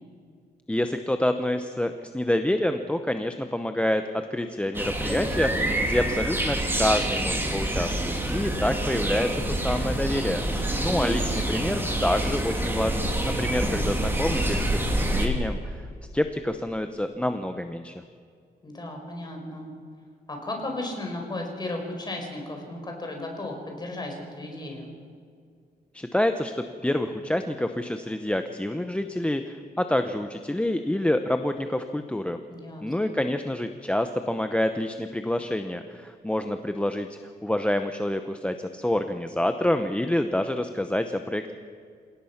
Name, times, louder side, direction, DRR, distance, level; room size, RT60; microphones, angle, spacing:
voice 1, 0.7-4.0 4.3-15.9 16.1-17.9 25.9-26.6 26.8-32.4 32.8-41.5, left 1 dB, 5° left, 7 dB, 0.8 m, -27 dB
sound 1, 4.7-15.3, right 1 dB, 10° right, 2.9 m, -27 dB
voice 2, 10.7-11.3 18.6-19.7 20.3-24.9 32.5-33.2, left 2 dB, 25° left, 2 dB, 4.8 m, -35 dB
28.0 x 17.0 x 5.9 m, 2.2 s
wide cardioid pair, 140°, 17 cm